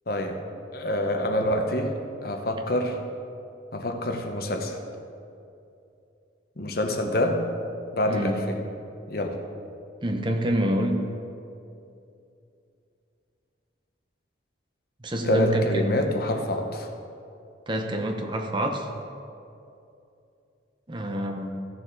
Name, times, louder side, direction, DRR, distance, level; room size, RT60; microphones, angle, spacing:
voice 1, 0.1-0.4 0.7-2.0 2.2-3.0 3.7-4.8 6.6-7.5 7.9-8.6 9.1-9.4 15.2-16.9, left 1 dB, 50° left, 4 dB, 0.9 m, -26 dB
voice 2, 8.1-8.4 10.0-11.1 15.0-15.9 17.7-18.9 20.9-21.7, right 1 dB, 25° right, 3 dB, 0.7 m, -27 dB
15.5 x 6.7 x 4.0 m, 2.6 s
head